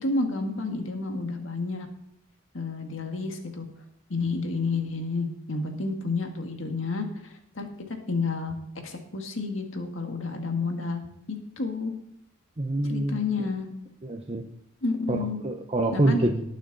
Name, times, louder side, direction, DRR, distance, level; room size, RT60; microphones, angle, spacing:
voice 1, 0.0-1.9 2.5-3.6 4.1-8.6 8.8-11.1 11.6-11.9 12.9-13.7 14.8-15.4 15.9-16.2, left 3 dB, 70° left, 4 dB, 1.8 m, -30 dB
voice 2, 12.6-13.2 14.0-14.4 15.1-15.2 15.4-16.4, right 1 dB, 30° right, 3 dB, 0.8 m, -25 dB
19.0 x 6.3 x 4.0 m, 0.79 s
head